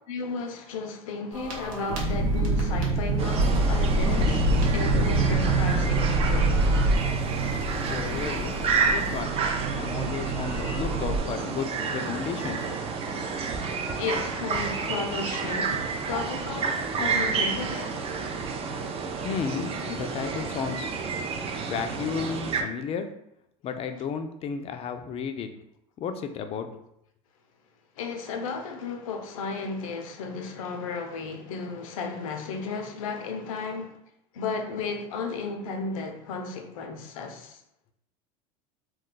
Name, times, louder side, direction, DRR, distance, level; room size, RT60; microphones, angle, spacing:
voice 1, 0.1-4.4 4.7-6.6 14.0-18.3 28.0-34.0 34.3-37.6, left 4 dB, 85° left, 0.5 m, -34 dB
sound 1, 1.3-11.2, right 2 dB, 80° right, 0.9 m, -25 dB
sound 2, 3.2-22.6, right 5 dB, 35° right, 0.4 m, -30 dB
voice 2, 7.9-8.6 8.9-9.3 9.7-12.6 19.2-21.2 21.7-23.1 23.6-25.5 26.0-26.7, left 6 dB, 35° left, 0.4 m, -33 dB
2.3 x 2.2 x 3.8 m
supercardioid pair, 100°, 17 cm